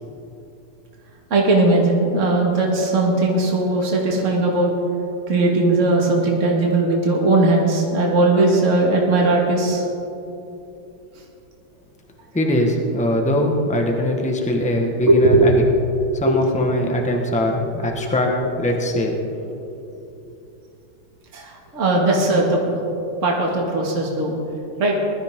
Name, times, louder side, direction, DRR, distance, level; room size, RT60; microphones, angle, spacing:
voice 1, 1.3-4.7 5.3-9.8 15.1-15.5 16.0-16.5 17.8-17.9 21.3-22.8 23.2-24.4 24.8-24.9, right 2 dB, 40° right, -1 dB, 2.2 m, -18 dB
voice 2, 12.3-15.5 16.1-19.1, left 1 dB, 5° left, 1 dB, 1.1 m, -21 dB
21.0 x 13.0 x 3.7 m, 2.8 s
omnidirectional pair, 2.1 m